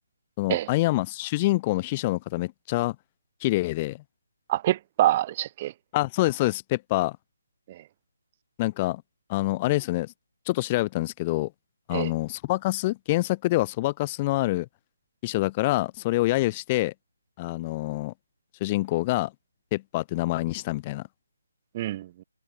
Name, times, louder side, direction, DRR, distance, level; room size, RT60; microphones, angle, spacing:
voice 1, 0.4-2.9 3.4-4.0 5.9-7.2 8.6-9.0 9.3-10.1 10.4-11.5 11.9-14.7 15.2-16.9 17.4-18.1 18.6-19.3 19.7-21.0, left 19 dB, 15° left, 2.8 m, -26 dB
voice 2, 4.5-5.7 7.7-7.8 11.9-12.1 21.7-22.2, right 14 dB, 20° right, 5.3 m, -26 dB
hypercardioid pair, 170°, 0 cm